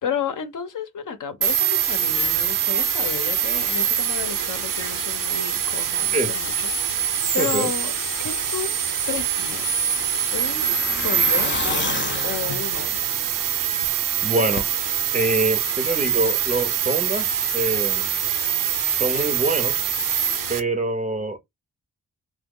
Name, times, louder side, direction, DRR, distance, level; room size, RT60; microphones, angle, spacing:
voice 1, 0.0-7.9 8.2-8.8 9.1-10.0 10.3-10.7 11.0-11.9 12.2-13.2 14.3-14.5, left 8 dB, 65° left, 0.7 m, -32 dB
sound 1, 1.4-20.6, right 8 dB, 70° right, 0.6 m, -24 dB
voice 2, 7.4-7.7 14.2-14.6 15.1-18.1 19.0-19.7 20.5-21.4, right 2 dB, 20° right, 0.5 m, -25 dB
Truck, 9.2-13.9 14.2-14.3 14.6-14.7, left 6 dB, 35° left, 0.4 m, -32 dB
2.9 x 2.0 x 3.6 m
wide cardioid pair, 120°, 34 cm